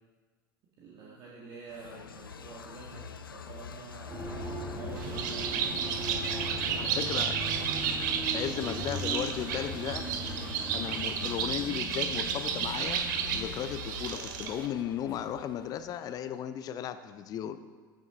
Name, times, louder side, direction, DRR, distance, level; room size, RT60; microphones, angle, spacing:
voice 1, 0.8-5.6, right 4 dB, 40° right, -4 dB, 1.7 m, -48 dB
sound 1, 1.7-16.4, left 7 dB, 85° left, 0.4 m, -45 dB
sound 2, 4.1-13.5, equal, 20° right, 1.8 m, -39 dB
Bird, 5.0-14.7, right 7 dB, 60° right, 0.8 m, -32 dB
voice 2, 6.8-7.5 8.3-10.1 10.7-13.0 13.3-17.6, left 10 dB, 35° left, 11 dB, 0.5 m, -35 dB
14.5 x 6.1 x 3.7 m, 1.5 s
figure-of-eight pair, 85°, 11 cm